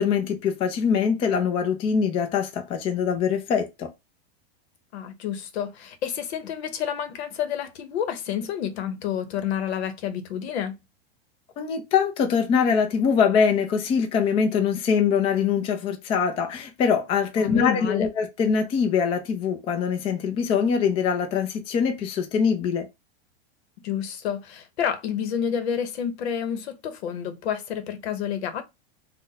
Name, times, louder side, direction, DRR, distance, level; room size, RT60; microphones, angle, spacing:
voice 1, 0.0-3.9 11.6-22.9, left 6 dB, 20° left, 0.4 m, -23 dB
voice 2, 4.9-10.8 17.4-18.1 23.8-28.6, left 8 dB, 80° left, 0.8 m, -29 dB
2.6 x 2.1 x 3.9 m
supercardioid pair, 150°, 32 cm